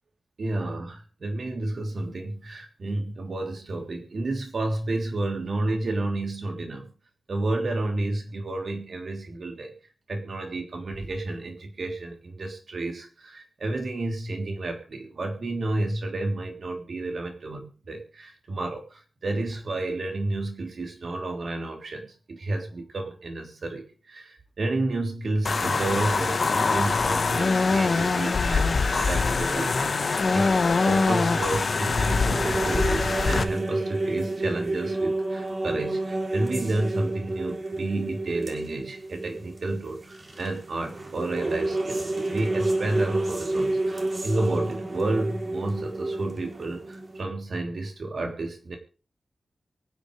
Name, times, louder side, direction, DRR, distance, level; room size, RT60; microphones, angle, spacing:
voice 1, 0.4-6.9 7.3-9.7 10.1-30.6 30.8-48.8, right 2 dB, 55° right, 3 dB, 3.3 m, -31 dB
sound 1, 25.4-33.4, left 4 dB, 50° left, 1.3 m, -23 dB
sound 2, 31.9-47.2, right 2 dB, 35° right, 3.4 m, -30 dB
23.5 x 10.0 x 3.3 m, 0.35 s
wide cardioid pair, 165°, 0 cm